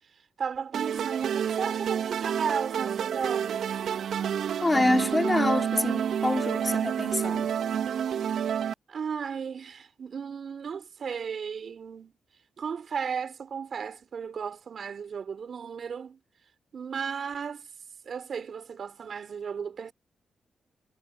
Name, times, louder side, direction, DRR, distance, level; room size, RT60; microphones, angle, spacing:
voice 1, 0.4-3.7 8.9-12.1 12.6-16.2 16.7-17.7 18.0-19.9, right 6 dB, 60° right, 6.8 m, -35 dB
sound 1, 0.7-8.7, right 8 dB, 80° right, 3.7 m, -29 dB
voice 2, 4.6-7.5, left 2 dB, 20° left, 4.3 m, -26 dB
cardioid pair, 65°, 0 cm